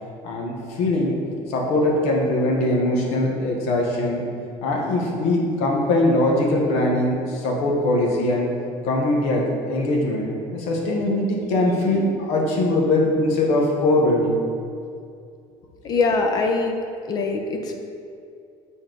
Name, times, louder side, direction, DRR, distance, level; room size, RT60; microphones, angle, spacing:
voice 1, 0.2-1.2 1.5-4.3 4.6-8.5 8.8-14.4, left 1 dB, 70° left, -1 dB, 1.2 m, -21 dB
voice 2, 15.8-16.7 17.1-17.7, left 3 dB, 35° left, 3 dB, 0.6 m, -22 dB
7.1 x 4.2 x 3.8 m, 2.4 s
cardioid pair, 165°, 11 cm